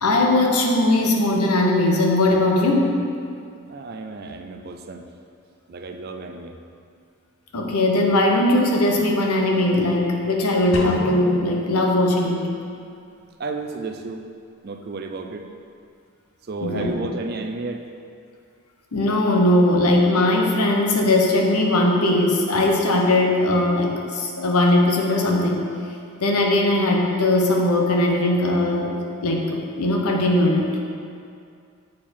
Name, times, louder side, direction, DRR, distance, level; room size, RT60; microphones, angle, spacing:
voice 1, 0.0-3.0 7.5-12.4 16.6-16.9 18.9-25.6 26.2-29.0 29.2-30.7, left 1 dB, 90° left, 0 dB, 0.9 m, -19 dB
voice 2, 3.7-5.1 5.7-6.6 13.4-14.2 14.6-15.4 16.5-17.9, right 3 dB, 45° right, 5 dB, 0.4 m, -32 dB
sound 1, 10.7-12.8, left 1 dB, 55° left, 0.9 m, -32 dB
7.2 x 4.7 x 4.4 m, 2.3 s
head